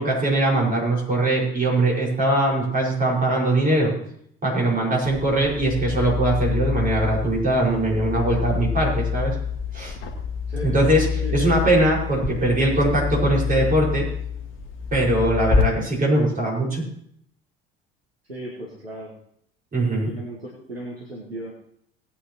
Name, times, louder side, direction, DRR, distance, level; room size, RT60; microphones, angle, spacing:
voice 1, 0.0-3.9 4.4-9.3 9.7-10.0 10.6-11.1 11.3-14.1 14.9-16.8 19.7-20.1, right 1 dB, 30° right, -3 dB, 5.5 m, -21 dB
sound 1, 5.0-15.6, left 6 dB, 40° left, 1.8 m, -27 dB
voice 2, 11.1-11.5 18.2-19.1 19.9-21.5, right 1 dB, 90° right, -3 dB, 1.7 m, -35 dB
18.5 x 9.5 x 3.1 m, 0.69 s
figure-of-eight pair, 60°, 29 cm